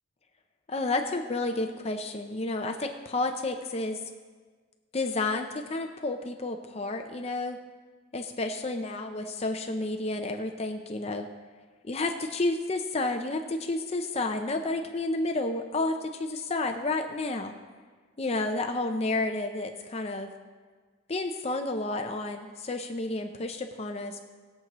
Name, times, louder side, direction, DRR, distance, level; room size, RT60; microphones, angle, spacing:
voice 1, 0.7-4.0 4.9-7.6 8.1-11.3 11.8-17.5 18.2-20.3 21.1-24.3, left 2 dB, 30° left, 5 dB, 0.5 m, -31 dB
20.0 x 7.4 x 3.0 m, 1.5 s
head